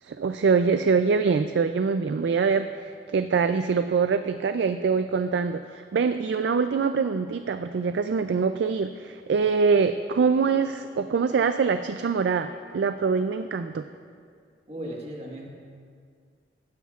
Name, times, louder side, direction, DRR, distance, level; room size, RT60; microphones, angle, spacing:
voice 1, 0.0-13.8, right 5 dB, 75° right, 9 dB, 0.3 m, -24 dB
voice 2, 14.7-15.5, right 1 dB, 35° right, -2 dB, 1.4 m, -36 dB
16.0 x 11.5 x 2.4 m, 2.2 s
head